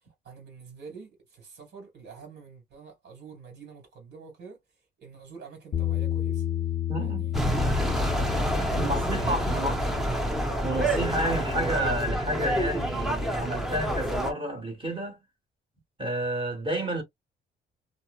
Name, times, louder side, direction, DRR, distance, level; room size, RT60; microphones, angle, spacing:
voice 1, 0.2-4.6 5.0-6.4 7.0-7.6 8.4-10.2, right 5 dB, 55° right, 1.6 m, -46 dB
Bass guitar, 5.7-12.0, left 12 dB, 40° left, 0.6 m, -32 dB
voice 2, 6.9-7.3 8.2-9.8 10.6-15.2 16.0-17.0, right 1 dB, 25° right, 1.4 m, -30 dB
sound 1, 7.3-14.3, equal, ahead, 0.8 m, -27 dB
2.7 x 2.0 x 2.4 m
cardioid pair, 90°, 20 cm